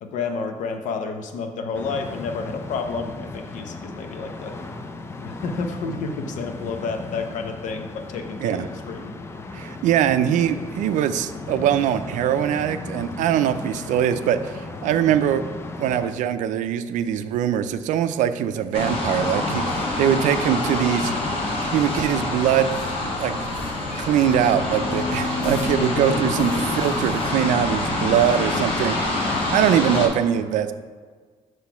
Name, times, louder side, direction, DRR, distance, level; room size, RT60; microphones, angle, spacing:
voice 1, 0.0-4.6 5.2-9.1 25.9-26.6, left 4 dB, 85° left, 5 dB, 0.7 m, -30 dB
sound 1, 1.7-16.1, left 3 dB, 20° left, 0.4 m, -36 dB
voice 2, 9.5-15.4 15.8-21.1 21.7-22.7 23.2-23.3 24.0-29.2 29.5-30.7, right 10 dB, 85° right, 11 dB, 0.4 m, -22 dB
sound 2, 18.7-30.1, left 2 dB, 45° left, 1.3 m, -26 dB
6.0 x 3.2 x 5.7 m, 1.6 s
cardioid pair, 140°, 13 cm